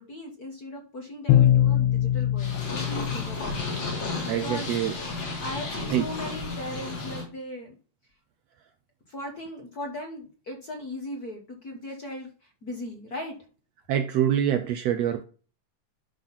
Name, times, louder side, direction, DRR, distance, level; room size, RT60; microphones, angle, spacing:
voice 1, 0.0-4.8 5.4-7.7 9.1-13.3, left 1 dB, 45° left, 1.4 m, -38 dB
Bowed string instrument, 1.3-4.1, left 11 dB, 90° left, 2.0 m, -23 dB
Purr, 2.4-7.2, left 3 dB, 65° left, 4.5 m, -33 dB
voice 2, 4.3-4.9 5.9-6.1 13.9-15.2, right 10 dB, 80° right, 1.5 m, -25 dB
11.5 x 4.0 x 5.6 m
omnidirectional pair, 3.4 m